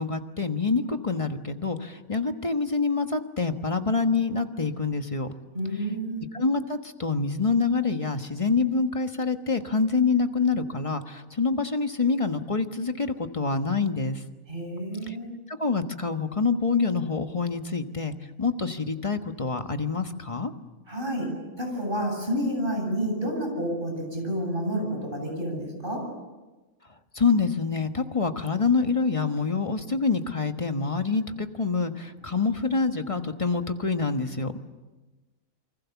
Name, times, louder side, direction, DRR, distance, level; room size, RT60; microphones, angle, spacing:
voice 1, 0.0-5.3 6.3-14.2 15.1-15.2 15.5-20.5 27.1-34.5, left 4 dB, 25° left, 7 dB, 1.3 m, -26 dB
voice 2, 5.5-6.2 14.5-15.3 20.9-21.3 21.6-26.0, equal, 40° right, 2 dB, 8.1 m, -29 dB
28.0 x 25.0 x 7.1 m, 1.2 s
omnidirectional pair, 1.4 m